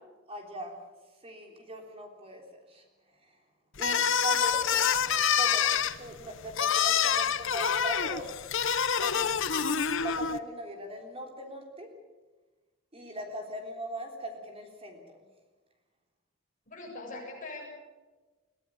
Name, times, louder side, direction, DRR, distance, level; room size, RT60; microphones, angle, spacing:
voice 1, 0.3-0.8 1.2-2.9 3.2-3.4 3.8-8.3 9.0-9.5 10.0-11.9 12.9-15.2, right 1 dB, 30° right, 3 dB, 3.6 m, -40 dB
sound 1, 3.8-10.4, left 7 dB, 60° left, 0.9 m, -27 dB
voice 2, 4.1-4.6 16.6-17.7, left 2 dB, 40° left, -1 dB, 7.7 m, -42 dB
22.5 x 16.0 x 8.7 m, 1.2 s
head